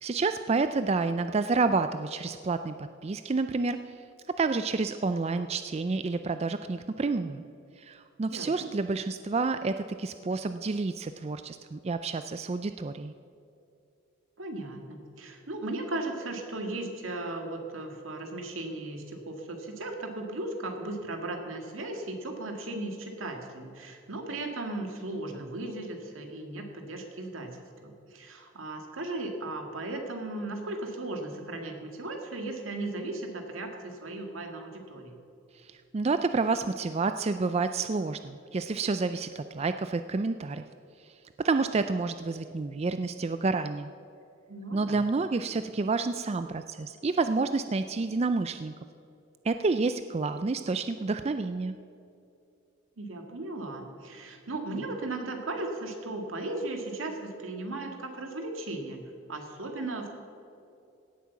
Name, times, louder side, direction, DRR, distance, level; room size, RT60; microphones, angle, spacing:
voice 1, 0.0-3.9 4.3-7.4 7.8-13.1 35.6-40.6 41.4-43.9 44.7-48.7 49.4-51.8, right 3 dB, 30° right, 10 dB, 0.4 m, -29 dB
voice 2, 8.3-8.7 14.4-35.2 44.5-45.0 53.0-59.0 59.3-60.1, right 2 dB, 80° right, 3 dB, 2.1 m, -36 dB
17.0 x 8.6 x 7.1 m, 2.6 s
head